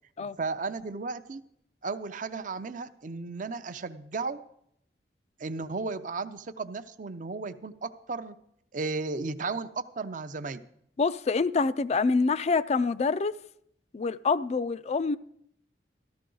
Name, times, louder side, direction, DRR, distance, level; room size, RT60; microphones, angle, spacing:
voice 1, 0.2-1.4 1.8-4.4 5.4-8.4 8.7-10.6, right 3 dB, 45° right, 11 dB, 0.6 m, -34 dB
voice 2, 11.0-13.3 13.9-15.2, left 4 dB, 35° left, 16 dB, 0.4 m, -26 dB
13.5 x 12.0 x 3.9 m, 0.72 s
head